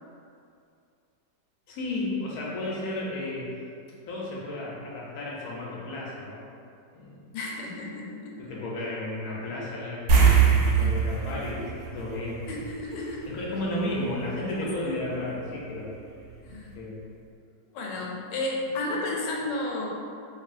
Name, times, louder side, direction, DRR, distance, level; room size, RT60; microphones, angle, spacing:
voice 1, 1.7-3.5 4.1-6.4 6.9-7.2 8.4-10.3 10.8-12.6 13.3-15.9 16.7-17.0, left 1 dB, 70° left, -5 dB, 1.0 m, -33 dB
voice 2, 7.3-8.4 10.7-10.9 12.5-13.2 16.4-16.7 17.7-19.9, left 2 dB, 90° left, -2 dB, 1.3 m, -32 dB
sound 1, 10.1-12.9 13.2-13.4 16.2-16.3 16.7-16.8, right 6 dB, 85° right, 1.2 m, -22 dB
3.0 x 2.7 x 2.4 m, 2.4 s
omnidirectional pair, 1.9 m